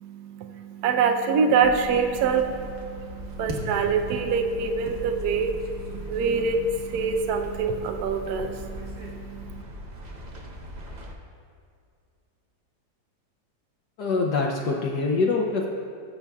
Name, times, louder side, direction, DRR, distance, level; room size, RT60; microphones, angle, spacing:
voice 1, 0.0-9.6, right 5 dB, 70° right, 4 dB, 1.1 m, -25 dB
sound 1, 1.6-11.1, right 1 dB, 50° right, 0.5 m, -40 dB
sound 2, 3.2-9.1, right 1 dB, 25° right, 0.9 m, -43 dB
voice 2, 14.0-15.7, left 3 dB, 70° left, -1 dB, 1.2 m, -24 dB
19.5 x 6.9 x 2.3 m, 2.3 s
omnidirectional pair, 2.0 m